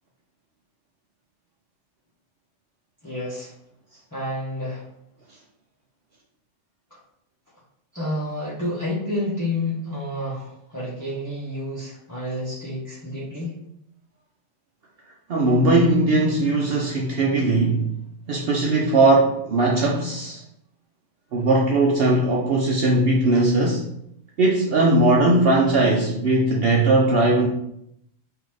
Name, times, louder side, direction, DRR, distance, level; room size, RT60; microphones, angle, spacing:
voice 1, 3.0-3.5 4.1-4.8 6.9-7.0 7.9-13.5, left 1 dB, 15° left, -9 dB, 1.1 m, -29 dB
voice 2, 15.3-17.9 18.3-20.4 21.3-23.9 24.4-27.5, right 2 dB, 60° right, 0 dB, 0.7 m, -19 dB
3.9 x 2.8 x 4.7 m, 0.76 s
omnidirectional pair, 1.3 m